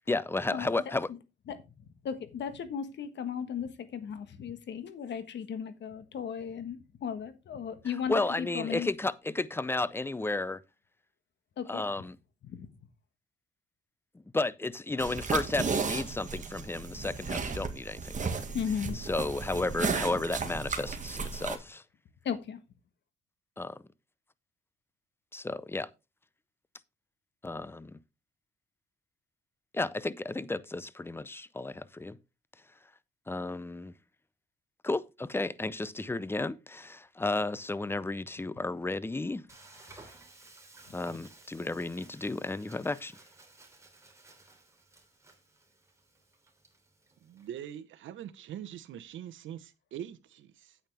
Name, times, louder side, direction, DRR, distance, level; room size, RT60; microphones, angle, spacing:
voice 1, 0.1-1.1 7.8-10.6 11.7-12.2 14.3-18.4 18.9-21.8 23.6-23.8 25.3-25.9 27.4-28.0 29.7-32.2 33.3-33.9 34.8-39.4 40.9-43.1, left 2 dB, 10° left, 0.6 m, -33 dB
voice 2, 2.0-8.9 11.6-11.8 12.4-12.7 18.5-19.0 22.2-22.6, left 7 dB, 65° left, 1.5 m, -36 dB
sound 1, 15.0-21.6, right 5 dB, 40° right, 1.8 m, -34 dB
Frying (food), 39.5-47.5, right 2 dB, 15° right, 3.1 m, -56 dB
voice 3, 47.2-50.8, right 10 dB, 75° right, 1.1 m, -43 dB
8.9 x 8.8 x 3.4 m
cardioid pair, 90°, 20 cm